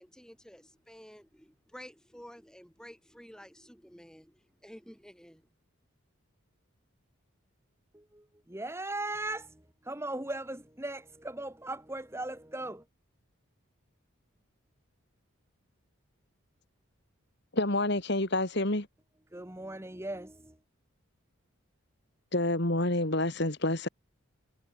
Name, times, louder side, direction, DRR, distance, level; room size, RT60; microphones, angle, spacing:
voice 1, 0.0-5.5, equal, 5° left, 6.3 m, -51 dB
voice 2, 8.5-9.5 9.8-12.8 19.3-20.5, right 2 dB, 10° right, 1.3 m, -38 dB
voice 3, 17.5-18.9 22.3-23.9, left 2 dB, 50° left, 2.6 m, -28 dB
head